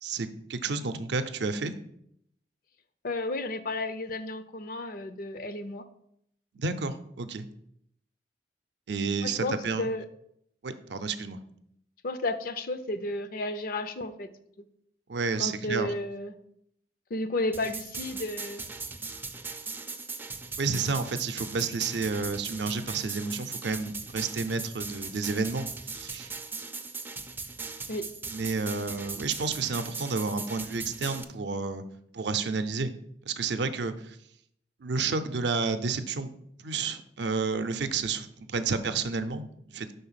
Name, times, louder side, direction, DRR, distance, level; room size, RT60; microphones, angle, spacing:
voice 1, 0.0-1.8 6.5-7.5 8.9-9.9 10.6-11.4 15.1-15.9 20.6-26.3 28.3-31.8 32.1-32.9 33.3-34.2 34.8-36.3 36.6-39.9, right 4 dB, 75° right, 10 dB, 0.5 m, -31 dB
voice 2, 3.0-5.8 9.2-10.1 12.0-14.3 15.4-16.4 17.1-18.6 27.9-28.1, left 2 dB, 55° left, 11 dB, 0.5 m, -32 dB
sound 1, 17.5-31.2, right 4 dB, 10° right, 0.3 m, -39 dB
5.5 x 3.9 x 5.7 m, 0.73 s
head